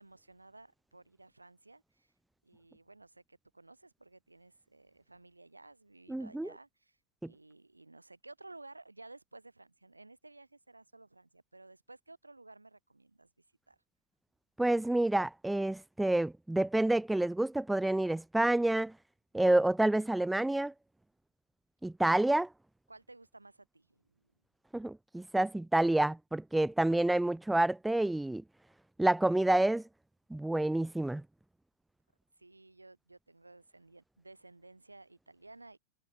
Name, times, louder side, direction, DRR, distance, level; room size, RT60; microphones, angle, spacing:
voice 1, 0.0-2.1 2.4-7.0 7.2-13.3 13.7-13.8 22.9-24.3 32.4-35.8, right 2 dB, 85° right, 1.6 m, -55 dB
voice 2, 6.1-6.5 14.6-18.9 19.3-20.7 21.8-22.5 24.7-28.4 29.0-29.8 30.3-31.2, right 1 dB, 5° right, 0.3 m, -28 dB
figure-of-eight pair, 90°, 0 cm